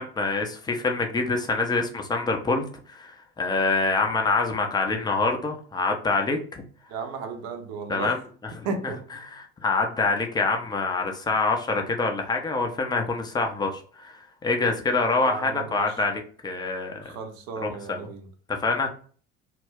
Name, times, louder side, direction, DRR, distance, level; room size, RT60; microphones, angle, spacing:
voice 1, 0.0-6.6 7.9-8.1 9.6-17.0 17.6-18.0 18.5-18.9, left 3 dB, 10° left, 3 dB, 0.5 m, -26 dB
voice 2, 6.9-8.2 8.6-9.0 15.2-16.0 17.0-18.3, right 4 dB, 50° right, 6 dB, 0.6 m, -34 dB
2.3 x 2.0 x 3.4 m, 0.43 s
figure-of-eight pair, 60°, 34 cm